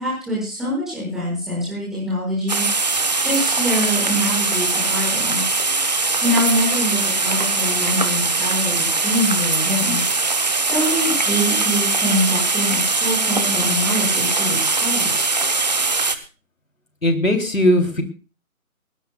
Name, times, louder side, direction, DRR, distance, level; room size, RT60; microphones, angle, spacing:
voice 1, 0.0-2.6 2.9-5.4 6.2-10.0 10.7-15.2, equal, ahead, -7 dB, 6.2 m, -24 dB
sound 1, 2.5-16.2, right 3 dB, 30° right, 1.0 m, -21 dB
voice 2, 17.0-18.0, left 1 dB, 65° left, 5 dB, 3.5 m, -18 dB
21.0 x 18.5 x 2.4 m, 0.33 s
figure-of-eight pair, 155°, 43 cm